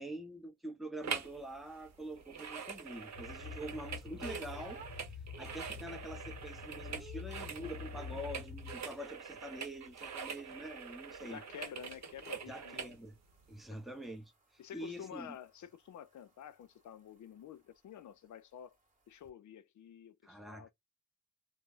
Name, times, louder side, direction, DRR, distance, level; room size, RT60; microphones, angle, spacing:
voice 1, 0.0-11.4 12.5-13.2 13.5-14.3 14.7-15.4 20.2-20.7, right 1 dB, ahead, 0.7 m, -45 dB
sound 1, 1.0-1.4 1.7-13.0 13.5-13.6, right 6 dB, 55° right, 0.8 m, -45 dB
sound 2, 1.1-5.1 5.6-6.0 6.3-8.4 10.9-19.3, right 2 dB, 25° right, 1.1 m, -59 dB
sound 3, 3.1-8.8, left 6 dB, 30° left, 1.1 m, -47 dB
voice 2, 11.2-12.9 13.7-13.8 14.6-18.8 19.1-20.7, left 9 dB, 60° left, 0.5 m, -50 dB
2.1 x 2.0 x 3.6 m
cardioid pair, 80°, 33 cm